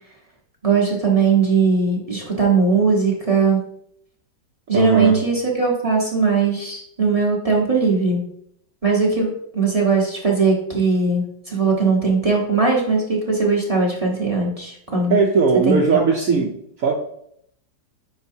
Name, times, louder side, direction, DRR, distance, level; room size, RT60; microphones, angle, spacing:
voice 1, 0.6-3.6 4.7-8.2 8.8-15.2 15.7-16.4, right 4 dB, 20° right, -3 dB, 1.2 m, -19 dB
voice 2, 4.7-5.1 15.1-16.9, right 5 dB, 60° right, 1 dB, 1.0 m, -19 dB
9.2 x 4.9 x 2.7 m, 0.72 s
omnidirectional pair, 1.9 m